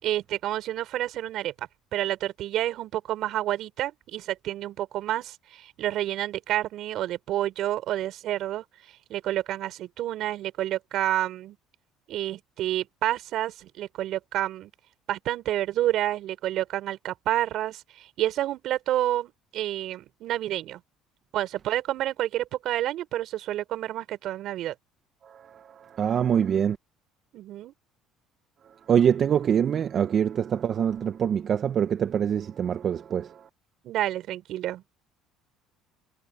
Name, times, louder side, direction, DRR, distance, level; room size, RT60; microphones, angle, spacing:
voice 1, 0.0-8.6 9.1-11.6 12.1-14.7 15.1-20.8 21.3-24.7 27.3-27.7 33.8-34.8, right 13 dB, 65° right, 4.8 m, -29 dB
voice 2, 25.2-26.8 28.9-33.4, right 8 dB, 50° right, 1.6 m, -25 dB
supercardioid pair, 75°, 0 cm